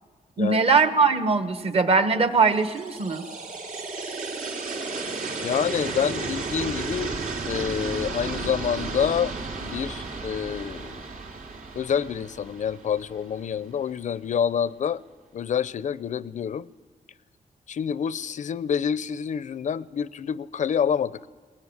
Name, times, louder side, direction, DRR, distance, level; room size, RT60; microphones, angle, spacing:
voice 1, 0.4-3.2, right 4 dB, 45° right, 1.5 m, -21 dB
sound 1, 2.4-13.4, right 3 dB, 75° right, 3.6 m, -33 dB
voice 2, 5.4-7.1 7.4-9.3 9.6-11.0 11.8-15.0 15.3-16.7 17.7-21.3, left 8 dB, 60° left, 0.6 m, -27 dB
21.5 x 20.0 x 9.7 m
wide cardioid pair, 170°, 14 cm